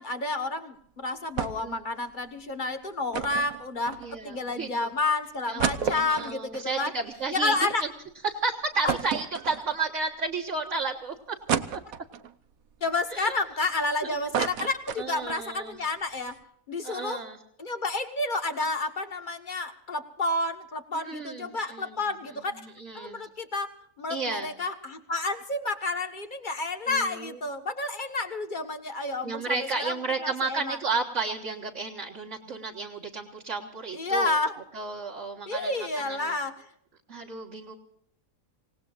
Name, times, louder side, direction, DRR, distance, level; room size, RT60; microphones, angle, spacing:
voice 1, 0.0-6.9 7.3-7.8 8.8-9.0 12.8-16.4 16.7-17.2 17.6-22.6 22.9-23.7 24.0-29.9 30.2-30.8 33.9-34.5 35.5-36.5, left 2 dB, 35° left, 7 dB, 1.5 m, -30 dB
sound 1, 1.4-1.8 2.1-2.2 3.1-4.4 4.9-5.0 5.3-7.8 8.2-8.3 8.9-10.0 10.5-10.6 11.5-12.3 12.9-13.9 14.1-15.5 15.8-15.9 16.1-16.4, right 8 dB, 75° right, 1.3 m, -32 dB
voice 2, 4.0-4.9 5.5-7.5 7.8-7.9 8.2-11.8 13.1-13.3 14.0-14.1 15.0-15.8 16.8-17.4 21.0-22.1 22.6-23.3 24.1-24.5 26.9-27.4 29.2-36.4 37.1-37.7, right 4 dB, 55° right, -2 dB, 2.0 m, -33 dB
27.0 x 18.5 x 2.5 m, 0.69 s
omnidirectional pair, 1.5 m